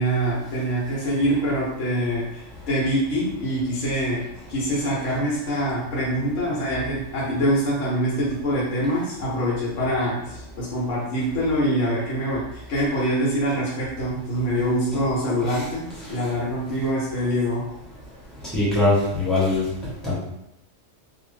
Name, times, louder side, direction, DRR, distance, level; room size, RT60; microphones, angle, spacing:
voice 1, 0.0-17.7, equal, 65° left, -6 dB, 1.2 m, -25 dB
voice 2, 18.5-19.6 20.0-20.1, left 2 dB, ahead, -9 dB, 0.9 m, -21 dB
2.6 x 2.1 x 3.1 m, 0.81 s
omnidirectional pair, 1.4 m